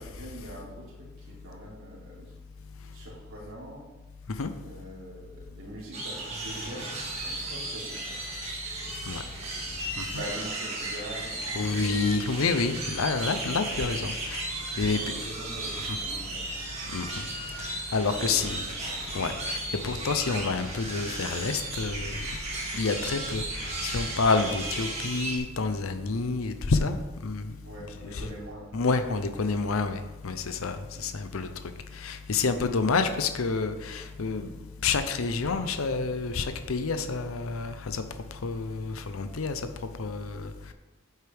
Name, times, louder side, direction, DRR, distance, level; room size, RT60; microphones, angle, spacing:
voice 1, 0.0-2.3 2.9-3.8 4.6-8.2 10.0-12.3 14.8-16.6 18.1-18.9 27.6-29.4 30.9-31.0, right 1 dB, 80° right, -5 dB, 3.3 m, -43 dB
sound 1, 5.9-25.4, right 2 dB, 30° right, 2.1 m, -35 dB
voice 2, 11.5-14.4 14.8-15.1 16.9-17.1 17.6-18.6 19.1-22.2 22.7-27.5 28.0-28.3 28.7-31.5 32.0-34.5 34.8-38.0 38.4-39.6 40.0-40.7, left 4 dB, 80° left, 9 dB, 0.7 m, -28 dB
9.1 x 8.2 x 3.5 m, 1.2 s
head